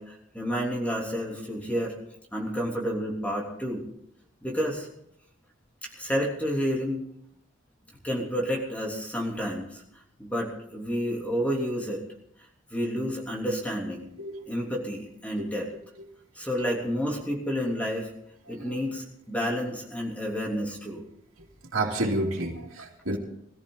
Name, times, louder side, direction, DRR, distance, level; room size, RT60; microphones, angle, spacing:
voice 1, 0.0-1.9 2.3-3.8 4.4-4.9 5.8-7.0 8.0-9.8 10.2-12.0 12.7-14.1 14.5-15.7 16.3-18.1 18.5-21.0, equal, 5° left, -2 dB, 3.2 m, -30 dB
voice 2, 21.7-23.2, right 2 dB, 90° right, -1 dB, 2.6 m, -29 dB
21.5 x 14.0 x 4.0 m, 0.75 s
head